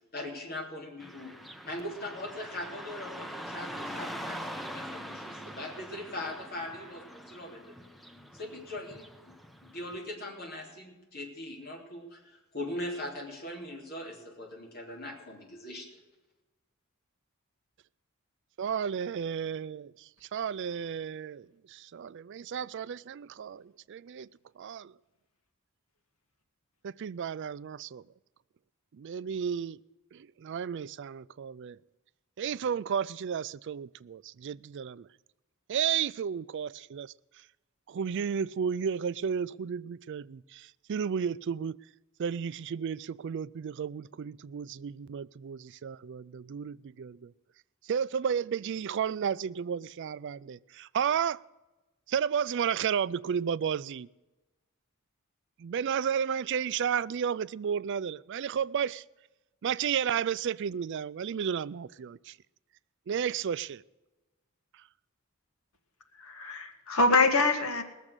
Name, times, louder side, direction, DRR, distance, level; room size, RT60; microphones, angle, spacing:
voice 1, 0.1-7.7 8.3-15.9, left 1 dB, 45° left, 3.2 m, -40 dB
Car passing by / Traffic noise roadway noise, 1.0-10.0, equal, ahead, 0.6 m, -43 dB
voice 2, 18.6-24.3 24.6-24.9 26.8-28.0 28.9-29.8 30.1-31.8 32.4-35.1 35.7-37.1 37.9-41.8 42.2-47.3 47.8-51.4 52.1-54.1 55.6-59.0 59.6-62.4 63.1-63.8, right 7 dB, 55° right, 0.3 m, -33 dB
voice 3, 66.2-67.8, left 3 dB, 75° left, 1.7 m, -25 dB
19.5 x 7.3 x 6.6 m
head